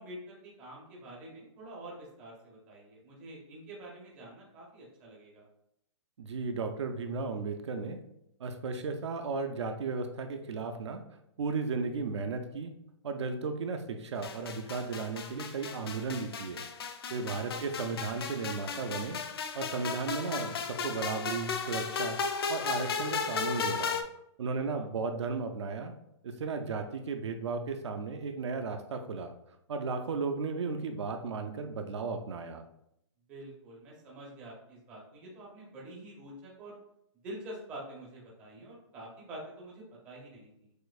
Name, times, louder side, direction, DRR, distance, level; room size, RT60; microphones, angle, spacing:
voice 1, 0.0-5.4 17.4-17.6 24.6-24.9 33.3-36.8 37.2-40.7, right 1 dB, 10° right, -4 dB, 0.5 m, -47 dB
voice 2, 6.2-8.0 8.4-11.0 11.4-12.7 13.0-16.6 17.1-19.2 19.5-24.0 24.4-25.9 26.2-29.3 29.7-32.6, right 4 dB, 60° right, 6 dB, 0.5 m, -35 dB
sound 1, 14.2-24.0, left 5 dB, 50° left, 0.4 m, -35 dB
6.3 x 2.5 x 2.3 m, 0.78 s
hypercardioid pair, 175°, 16 cm